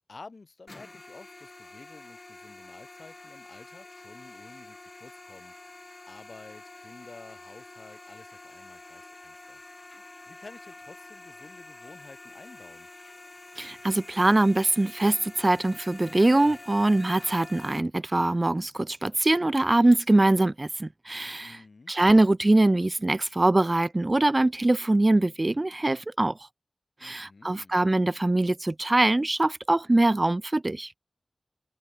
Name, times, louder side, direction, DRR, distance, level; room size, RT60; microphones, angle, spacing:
voice 1, 0.1-5.8 6.1-9.7 10.3-12.9 21.4-21.9 27.0-27.8, left 3 dB, 70° left, 5.4 m, -51 dB
sound 1, 0.7-17.8, left 2 dB, 40° left, 2.7 m, -47 dB
voice 2, 13.6-21.6 21.9-26.4 27.0-30.9, right 2 dB, 35° right, 0.7 m, -23 dB
wide cardioid pair, 70°, 0 cm